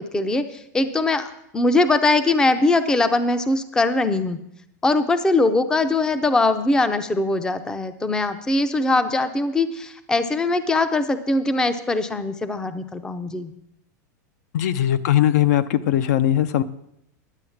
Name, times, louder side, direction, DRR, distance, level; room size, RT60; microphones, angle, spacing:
voice 1, 0.0-4.4 4.8-13.5, left 2 dB, 5° left, 11 dB, 0.5 m, -21 dB
voice 2, 14.5-16.6, left 11 dB, 60° left, 13 dB, 0.6 m, -19 dB
11.0 x 7.7 x 7.2 m, 0.78 s
supercardioid pair, 155°, 10 cm